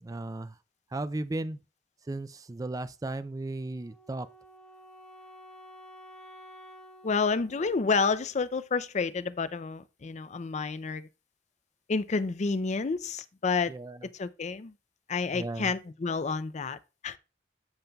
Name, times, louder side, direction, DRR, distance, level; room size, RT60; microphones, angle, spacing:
voice 1, 0.0-0.5 0.9-1.6 2.1-4.3 13.7-14.0 15.3-15.7, right 2 dB, 20° right, 0.4 m, -35 dB
Wind instrument woodwind instrument, 3.5-8.6, equal, 5° left, 1.0 m, -52 dB
voice 2, 7.0-11.1 11.9-13.7 14.1-14.7 15.1-16.8 17.0-17.2, left 4 dB, 40° left, 0.5 m, -29 dB
13.5 x 5.3 x 2.3 m
head